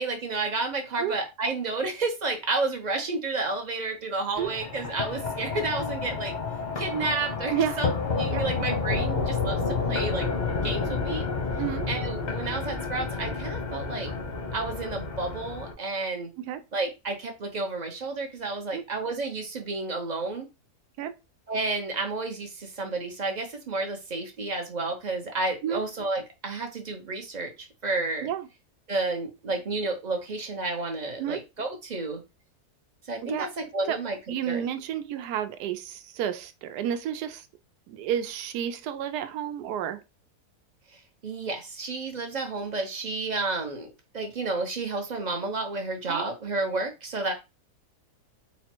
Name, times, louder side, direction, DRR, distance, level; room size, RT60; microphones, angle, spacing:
voice 1, 0.0-6.3 6.8-10.3 10.6-11.3 11.9-14.1 14.5-16.3 16.7-20.5 21.5-28.3 28.9-32.2 33.1-33.5 33.7-34.2 34.5-34.6 41.2-43.9 44.1-47.3, right 3 dB, 50° right, 0.5 m, -31 dB
sound 1, 4.3-15.7, left 4 dB, 45° left, 0.6 m, -30 dB
voice 2, 11.6-11.9 16.4-16.6 18.7-18.8 21.0-21.1 25.6-25.9 28.2-28.5 31.2-31.4 33.2-33.5 33.8-34.0 34.3-37.5 37.9-40.0 46.1-46.2, right 9 dB, 85° right, 1.2 m, -31 dB
4.0 x 2.1 x 4.3 m
omnidirectional pair, 1.7 m